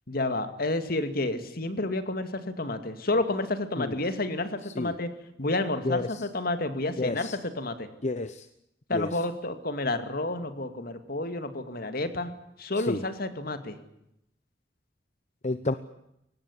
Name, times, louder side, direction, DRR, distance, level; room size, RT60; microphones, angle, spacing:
voice 1, 0.1-5.1 5.4-7.9 8.9-12.3 12.6-13.8, left 2 dB, 55° left, 9 dB, 2.4 m, -30 dB
voice 2, 7.0-7.4 8.0-8.4 8.9-9.1 12.9-13.0 15.4-15.7, left 2 dB, 40° left, 12 dB, 1.0 m, -29 dB
23.0 x 18.5 x 9.9 m, 0.83 s
head